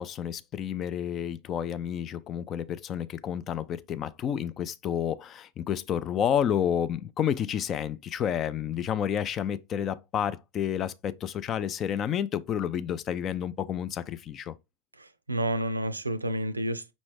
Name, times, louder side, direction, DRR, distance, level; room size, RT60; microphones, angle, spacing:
voice 1, 0.0-14.5, left 9 dB, 30° left, 0.4 m, -30 dB
voice 2, 15.0-16.9, right 1 dB, 80° right, 0.5 m, -30 dB
5.3 x 3.0 x 3.3 m
figure-of-eight pair, 90°, 0 cm